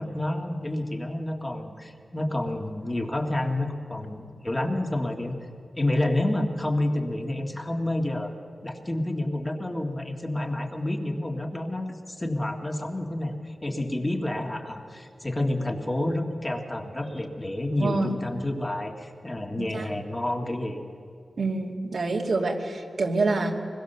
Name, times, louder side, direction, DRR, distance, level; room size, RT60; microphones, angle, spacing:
voice 1, 0.0-5.5 5.8-8.3 8.6-20.8, left 1 dB, 20° left, 2 dB, 1.9 m, -29 dB
voice 2, 17.8-18.1 19.6-19.8 21.4-23.6, right 3 dB, 70° right, 0 dB, 2.6 m, -26 dB
24.5 x 21.5 x 6.9 m, 2.3 s
wide cardioid pair, 110°, 0 cm